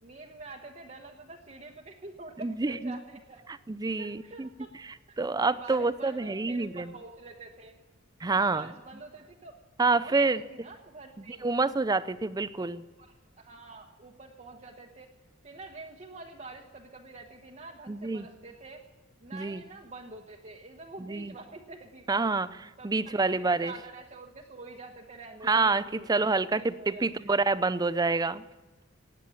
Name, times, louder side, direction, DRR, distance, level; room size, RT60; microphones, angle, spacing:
voice 1, 0.0-3.4 4.0-4.7 5.1-5.2 5.5-7.8 8.3-9.6 9.9-11.7 12.6-12.7 13.0-15.1 15.4-18.8 19.2-22.3 22.8-27.3, right 3 dB, 35° right, -1 dB, 1.1 m, -47 dB
voice 2, 2.4-3.0 3.7-4.5 5.2-6.9 8.2-8.7 9.8-10.4 11.3-12.8 17.9-18.3 19.3-19.6 21.1-21.3 22.1-23.7 25.4-25.8 26.1-28.4, right 3 dB, 20° right, 15 dB, 0.4 m, -27 dB
17.0 x 9.1 x 8.4 m, 1.2 s
head